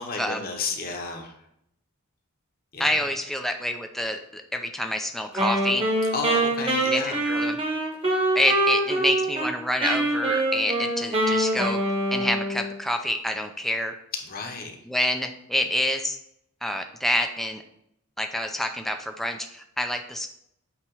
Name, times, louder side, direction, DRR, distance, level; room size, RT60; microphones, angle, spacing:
voice 1, 0.0-1.3 2.7-3.0 6.1-7.2 14.2-14.8, left 3 dB, 45° left, 3 dB, 0.9 m, -32 dB
voice 2, 2.8-5.8 6.9-7.6 8.4-11.8 12.1-13.9 14.9-16.2 16.6-17.6 18.2-20.3, left 1 dB, ahead, 5 dB, 0.4 m, -27 dB
Wind instrument woodwind instrument, 5.3-9.5 9.8-12.7, right 1 dB, 25° right, 1.2 m, -24 dB
8.6 x 2.9 x 4.6 m, 0.76 s
head